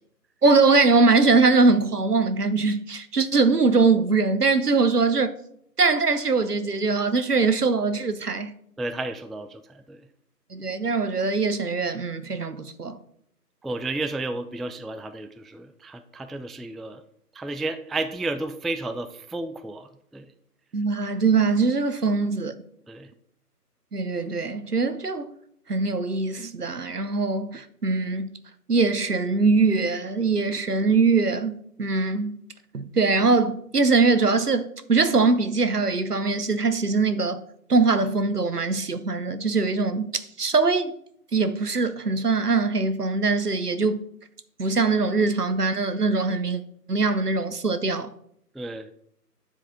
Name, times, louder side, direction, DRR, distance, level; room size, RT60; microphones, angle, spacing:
voice 1, 0.4-5.3 5.8-8.5 10.5-13.0 20.7-22.5 23.9-25.3 25.7-28.3 28.7-32.4 32.7-37.4 37.7-40.9 41.3-44.0 44.6-46.6 46.9-48.1, right 4 dB, 70° right, 0.9 m, -22 dB
voice 2, 8.8-10.1 13.6-17.0 17.3-20.3 22.9-23.1 48.5-48.9, right 2 dB, ahead, 0.3 m, -32 dB
10.0 x 4.8 x 3.7 m
figure-of-eight pair, 170°, 48 cm